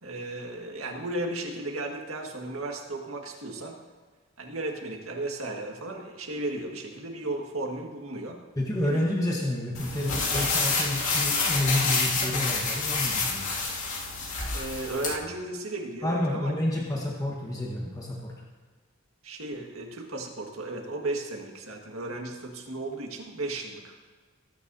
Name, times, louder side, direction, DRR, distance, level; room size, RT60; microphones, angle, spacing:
voice 1, 0.0-3.8 4.4-8.4 8.8-9.0 14.5-16.5 19.2-23.9, right 2 dB, 90° right, 1 dB, 1.8 m, -35 dB
voice 2, 8.6-13.5 16.0-18.3, left 1 dB, 15° left, -2 dB, 1.2 m, -29 dB
sound 1, 9.7-15.1, left 4 dB, 85° left, 2.3 m, -28 dB
19.0 x 9.7 x 2.7 m, 1.5 s
head